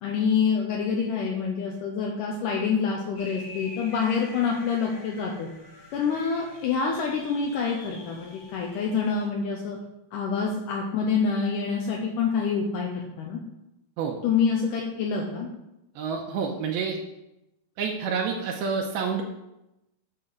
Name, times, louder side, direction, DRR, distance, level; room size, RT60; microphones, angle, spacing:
voice 1, 0.0-5.5 5.9-9.8 10.1-12.9 13.2-13.4 14.2-15.5, left 6 dB, 80° left, -1 dB, 1.9 m, -26 dB
sound 1, 3.1-9.3, left 2 dB, 55° left, 0.9 m, -46 dB
voice 2, 16.0-17.0 17.8-19.2, right 5 dB, 80° right, 1 dB, 2.5 m, -28 dB
9.9 x 3.8 x 6.1 m, 0.90 s
omnidirectional pair, 4.7 m